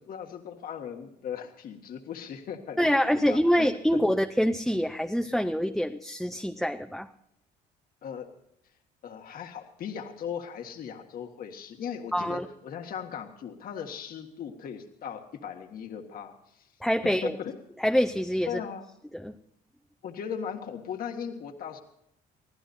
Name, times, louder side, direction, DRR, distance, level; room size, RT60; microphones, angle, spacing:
voice 1, 0.0-3.7 8.0-8.3 9.0-16.7 17.2-17.6 18.5-18.8 20.0-21.8, left 7 dB, 60° left, 4 dB, 1.8 m, -38 dB
voice 2, 2.8-7.1 12.1-12.4 16.8-17.4 17.8-18.6 19.1-19.4, equal, ahead, 5 dB, 0.7 m, -25 dB
24.5 x 15.5 x 2.7 m, 0.75 s
cardioid pair, 110°, 17 cm